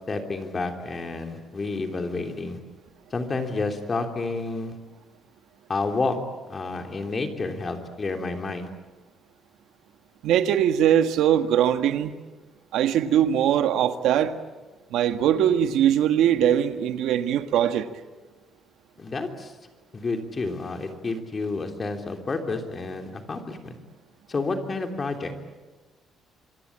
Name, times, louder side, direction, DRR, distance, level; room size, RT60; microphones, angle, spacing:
voice 1, 0.1-2.6 3.1-4.8 5.7-6.2 6.5-8.7 19.0-19.5 19.9-23.8 24.3-25.3, left 3 dB, 25° left, 4 dB, 3.3 m, -30 dB
voice 2, 10.2-12.1 12.7-14.3 14.9-17.9, right 10 dB, 85° right, 8 dB, 1.6 m, -21 dB
26.5 x 23.5 x 8.7 m, 1.2 s
cardioid pair, 140°, 0 cm